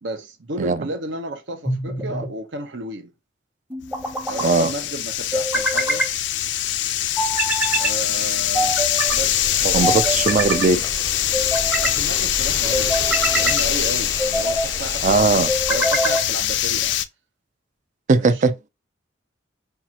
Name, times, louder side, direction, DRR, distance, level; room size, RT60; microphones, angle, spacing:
voice 1, 0.0-3.1 4.3-6.1 7.8-8.8 9.1-9.4 11.7-13.0 13.4-15.1 15.3-15.4 15.7-16.9 18.2-18.3, right 1 dB, 70° right, 0.9 m, -32 dB
sound 1, 1.7-2.3 3.7-4.5 5.3-6.1 7.2-7.9 8.5-9.2 9.8-10.7 11.3-12.0 12.7-13.6 14.2-14.7 15.5-16.3, right 1 dB, 10° right, 0.8 m, -24 dB
sound 2, 3.8-17.0, left 12 dB, 65° left, 0.4 m, -23 dB
voice 2, 4.4-4.7 9.6-10.9 15.0-15.5 18.1-18.7, right 3 dB, 40° right, 0.4 m, -19 dB
sound 3, 9.1-15.8, left 2 dB, 20° left, 0.5 m, -33 dB
5.6 x 2.5 x 2.9 m
head